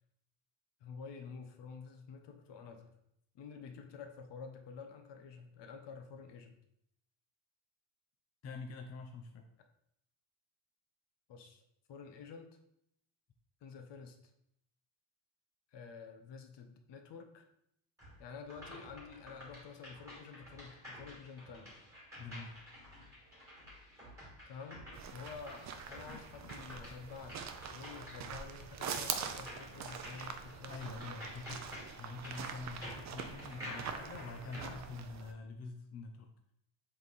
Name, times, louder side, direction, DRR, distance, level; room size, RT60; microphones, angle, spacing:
voice 1, 0.8-2.9 3.3-6.6 11.3-11.6 11.9-12.6 13.6-14.2 15.7-17.5 18.2-21.7 24.4-24.9 25.1-31.6, left 5 dB, 55° left, 6 dB, 1.0 m, -50 dB
voice 2, 8.4-9.5 22.2-22.6 26.1-26.5 30.7-36.3, left 3 dB, 30° left, 3 dB, 0.5 m, -46 dB
sound 1, 18.0-34.8, left 1 dB, 5° right, 2.7 m, -51 dB
sound 2, 24.9-35.3, right 7 dB, 35° right, 0.5 m, -44 dB
7.7 x 3.7 x 4.0 m, 0.75 s
cardioid pair, 170°, 49 cm